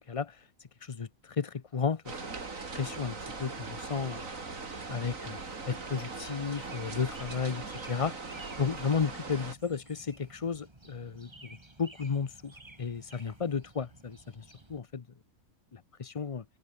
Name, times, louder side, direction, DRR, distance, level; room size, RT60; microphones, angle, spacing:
voice 1, 0.8-2.1 2.7-4.2 4.9-5.4 5.7-8.2 8.6-12.5 12.8-14.4 14.7-15.0 15.7-16.4, left 5 dB, 35° left, 0.6 m, -33 dB
sound 1, 2.1-9.6, right 4 dB, 65° right, 3.4 m, -40 dB
sound 2, 2.7-14.8, right 2 dB, 20° right, 2.1 m, -55 dB
open air
omnidirectional pair, 1.5 m